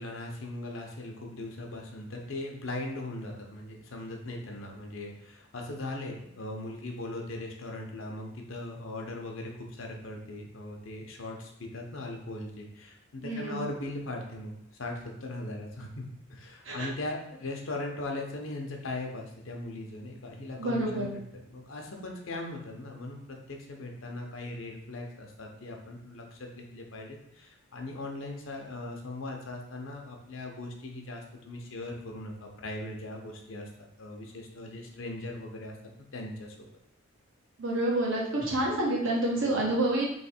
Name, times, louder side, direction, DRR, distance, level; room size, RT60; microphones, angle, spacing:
voice 1, 0.0-35.8 36.1-36.7, left 2 dB, 70° left, 1 dB, 0.8 m, -39 dB
voice 2, 13.2-13.6 16.6-16.9 20.6-21.1 37.6-40.0, right 1 dB, 65° right, -4 dB, 1.3 m, -28 dB
3.2 x 3.0 x 4.3 m, 0.75 s
head